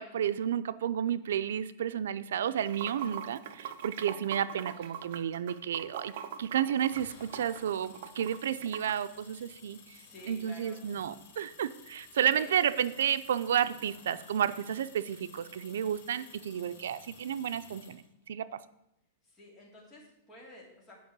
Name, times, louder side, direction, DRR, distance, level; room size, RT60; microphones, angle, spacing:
voice 1, 0.0-6.1 6.4-10.0 10.3-18.0 18.3-18.6, right 9 dB, 85° right, 13 dB, 0.5 m, -31 dB
Water / Sink (filling or washing), 2.5-8.9, right 9 dB, 55° right, 0.8 m, -42 dB
sound 1, 6.7-18.0, left 5 dB, 55° left, 2.8 m, -55 dB
voice 2, 9.9-10.8 12.2-12.5 19.3-21.0, left 1 dB, 15° left, -3 dB, 3.1 m, -51 dB
9.4 x 5.3 x 8.1 m, 0.83 s
supercardioid pair, 165°, 0 cm